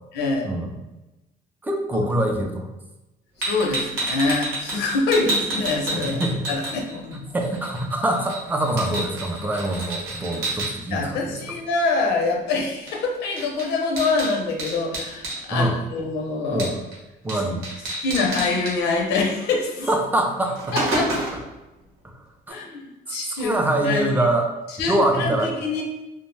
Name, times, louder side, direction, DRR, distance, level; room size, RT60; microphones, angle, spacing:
voice 1, 0.1-0.5 1.9-2.1 3.4-7.2 10.9-16.7 18.0-19.9 20.7-21.1 22.5-24.0 24.8-25.8, left 3 dB, 80° left, 0 dB, 0.6 m, -25 dB
voice 2, 1.6-2.7 6.1-6.5 7.3-11.4 15.5-15.8 16.5-16.7 17.2-17.6 19.9-20.8 22.5-22.6 23.1-24.5 24.9-25.5, right 1 dB, 10° right, 2 dB, 0.4 m, -24 dB
sound 1, 3.4-7.1 7.4-10.7 12.9-13.0 13.2-15.4 16.6-17.0 17.3-17.4 17.6-18.7 19.8-19.9 20.3-21.5, right 1 dB, 90° right, 1.0 m, -29 dB
2.3 x 2.1 x 3.1 m, 1.0 s
cardioid pair, 110°, 17 cm